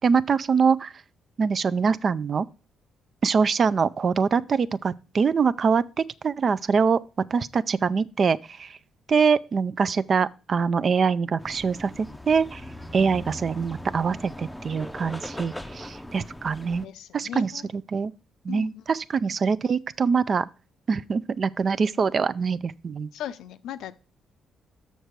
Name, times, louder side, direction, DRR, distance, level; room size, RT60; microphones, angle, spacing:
voice 1, 0.0-0.9 1.4-2.5 3.2-7.0 7.3-8.8 9.1-12.6 12.9-16.8 17.1-18.1 18.4-20.5 20.9-23.1, right 5 dB, 45° right, 0.4 m, -24 dB
sound 1, 11.4-16.9, equal, 5° left, 0.6 m, -39 dB
voice 2, 16.8-17.7 18.5-18.8 23.1-23.9, left 11 dB, 85° left, 0.5 m, -37 dB
6.6 x 6.5 x 4.6 m
cardioid pair, 85°, 0 cm